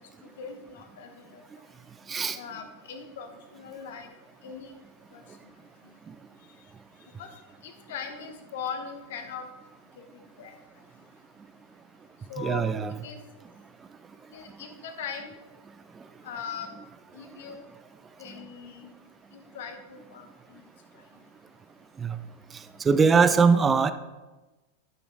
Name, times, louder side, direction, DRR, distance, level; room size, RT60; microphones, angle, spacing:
voice 1, 0.0-1.4 2.3-4.1 4.4-4.8 5.1-5.2 7.2-9.5 10.0-10.1 10.4-10.6 12.3-12.6 13.0-13.2 14.3-15.4 16.2-16.8 17.1-17.7 18.2-19.0 19.3-20.6, left 6 dB, 55° left, 7 dB, 1.1 m, -40 dB
voice 2, 12.4-12.9 22.0-22.2 22.8-23.9, right 5 dB, 20° right, 11 dB, 0.5 m, -21 dB
12.0 x 5.9 x 3.8 m, 1.1 s
figure-of-eight pair, 90°, 0 cm